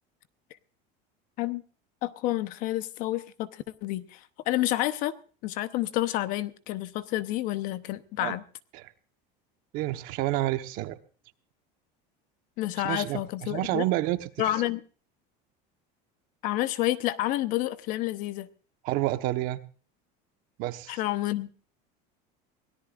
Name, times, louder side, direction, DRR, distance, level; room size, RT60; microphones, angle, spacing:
voice 1, 2.0-4.2 4.5-5.1 5.4-8.4 12.6-13.8 14.4-14.8 16.4-18.5 20.9-21.5, left 15 dB, 45° left, 14 dB, 0.9 m, -29 dB
voice 2, 9.7-11.0 12.8-14.5 18.8-19.6 20.6-21.0, right 16 dB, 50° right, 10 dB, 1.1 m, -29 dB
23.5 x 17.5 x 2.4 m, 0.39 s
cardioid pair, 180°, 19 cm